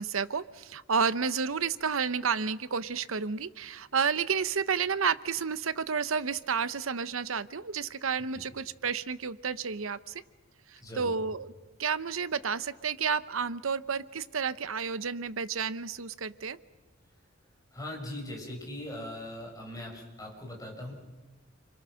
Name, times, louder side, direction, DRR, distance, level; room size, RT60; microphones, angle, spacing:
voice 1, 0.0-10.2 10.7-11.5 11.8-16.6, right 6 dB, 85° right, 15 dB, 0.9 m, -31 dB
voice 2, 10.8-11.1 17.7-20.9, left 1 dB, 20° left, 0 dB, 6.1 m, -40 dB
30.0 x 23.5 x 6.4 m, 1.3 s
head